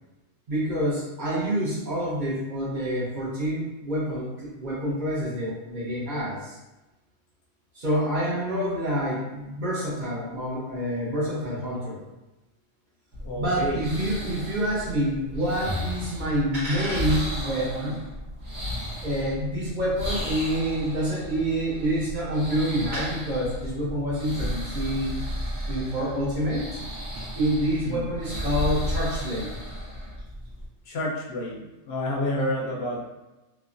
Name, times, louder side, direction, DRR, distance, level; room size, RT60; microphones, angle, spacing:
voice 1, 0.5-6.6 7.7-12.0 13.4-18.0 19.0-25.2 25.7-26.8 27.3-29.5, equal, 50° right, -6 dB, 0.7 m, -27 dB
sound 1, 13.1-30.7, equal, 65° right, 1.1 m, -34 dB
voice 2, 13.2-13.8 27.8-28.0 30.9-33.0, left 1 dB, 65° left, -2 dB, 0.8 m, -29 dB
3.0 x 2.0 x 2.4 m, 1.0 s
omnidirectional pair, 1.2 m